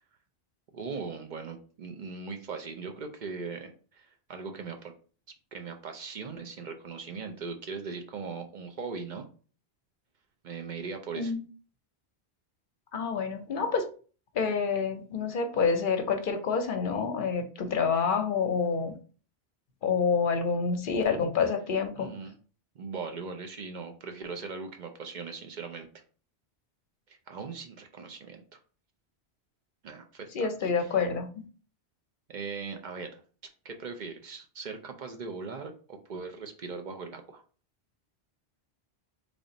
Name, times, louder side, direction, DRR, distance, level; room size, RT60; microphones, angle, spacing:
voice 1, 0.7-4.9 5.5-9.3 10.4-11.3 22.0-22.4 22.8-25.9 27.1-28.4 29.8-30.7 32.3-33.2 33.6-37.4, right 4 dB, 55° right, 5 dB, 0.6 m, -39 dB
voice 2, 12.9-13.9 14.3-18.9 19.8-22.1 30.3-31.3, left 5 dB, 55° left, 6 dB, 0.8 m, -28 dB
3.4 x 2.4 x 3.8 m, 0.38 s
omnidirectional pair, 1.1 m